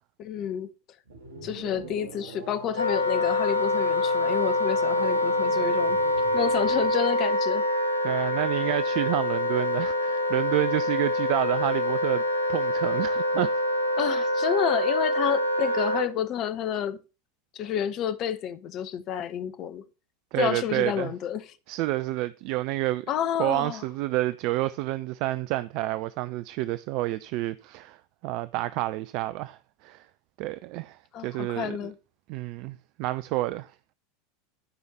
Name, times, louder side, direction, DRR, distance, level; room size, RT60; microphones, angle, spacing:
voice 1, 0.2-0.7 1.4-6.0 6.3-7.6 14.0-17.0 17.5-19.8 20.4-21.5 23.1-23.8 31.1-31.9, left 9 dB, 40° left, 1.1 m, -30 dB
sound 1, 1.1-7.0, right 3 dB, 70° right, 2.0 m, -43 dB
Wind instrument woodwind instrument, 2.8-16.1, left 1 dB, 85° left, 1.0 m, -25 dB
voice 2, 8.0-12.2 12.5-13.5 20.3-21.1 21.7-23.1 23.4-28.0 28.2-30.1 30.4-31.9 32.3-33.7, right 17 dB, 50° right, 0.4 m, -29 dB
12.5 x 5.6 x 4.3 m
figure-of-eight pair, 80°, 0 cm